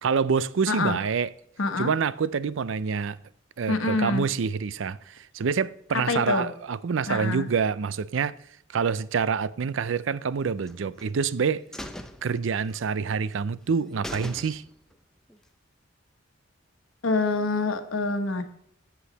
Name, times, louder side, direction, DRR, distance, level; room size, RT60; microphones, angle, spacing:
voice 1, 0.0-1.3 1.8-3.2 3.6-8.4 8.7-11.7 12.2-14.6, right 6 dB, 65° right, 0.4 m, -27 dB
voice 2, 0.7-1.0 1.6-1.9 3.7-4.2 6.1-6.5 7.1-7.5 17.0-18.4, left 3 dB, 80° left, 1.2 m, -26 dB
sound 1, 10.6-11.3 11.7-13.0 13.3-13.4 13.7-13.8 14.0-14.9 15.3-15.4, equal, 5° left, 0.6 m, -40 dB
8.3 x 8.0 x 4.0 m
head